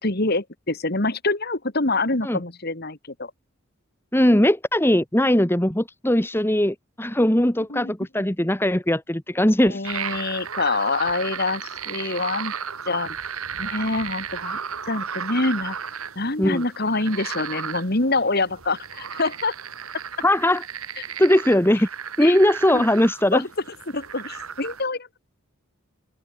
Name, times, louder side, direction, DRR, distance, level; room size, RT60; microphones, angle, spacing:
voice 1, 0.0-3.3 7.7-7.9 9.6-12.5 12.9-13.1 13.6-14.6 14.9-15.8 16.2-19.5 21.0-21.1 22.2-22.4 22.7-22.8 23.3-23.5 23.9-25.1, left 3 dB, 50° left, 2.4 m, -25 dB
voice 2, 4.1-9.8 16.4-16.6 20.2-20.6 21.2-21.9 22.2-23.4, left 1 dB, 10° left, 1.4 m, -20 dB
sound 1, 9.8-24.8, right 7 dB, 90° right, 1.9 m, -34 dB
head